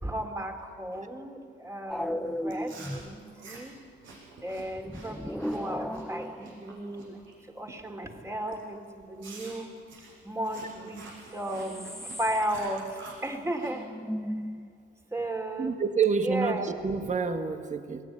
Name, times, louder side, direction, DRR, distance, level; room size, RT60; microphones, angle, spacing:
voice 1, 0.0-3.8 4.4-9.7 10.2-11.0 11.3-11.9 12.2-13.9 15.1-15.8 16.2-16.7, right 1 dB, 15° right, 4 dB, 3.4 m, -35 dB
sound 1, 1.9-3.2 4.7-6.9 11.0-11.1 11.3-12.6 12.9-13.0 13.3-13.4 13.7-14.7 16.8-17.2, equal, ahead, 0.8 m, -36 dB
Chewing mastication, 2.5-7.3 7.7-8.0 8.5-8.6 9.2-13.7, right 3 dB, 80° right, 7.4 m, -48 dB
voice 2, 15.6-18.0, right 5 dB, 35° right, 7 dB, 1.8 m, -28 dB
22.5 x 18.5 x 9.9 m, 2.2 s
cardioid pair, 90°, 20 cm